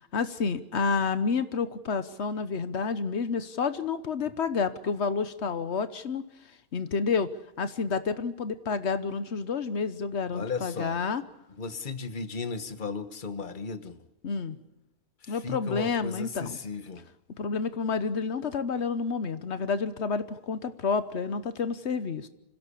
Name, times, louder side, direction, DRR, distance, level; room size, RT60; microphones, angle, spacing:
voice 1, 0.1-6.3 6.7-11.2 14.2-14.6 15.3-16.6 17.4-22.3, left 5 dB, 85° left, 12 dB, 1.3 m, -29 dB
voice 2, 10.3-11.0 11.5-14.0 15.2-17.1, left 4 dB, 50° left, 10 dB, 1.4 m, -35 dB
26.5 x 16.5 x 8.4 m, 0.92 s
omnidirectional pair, 1.1 m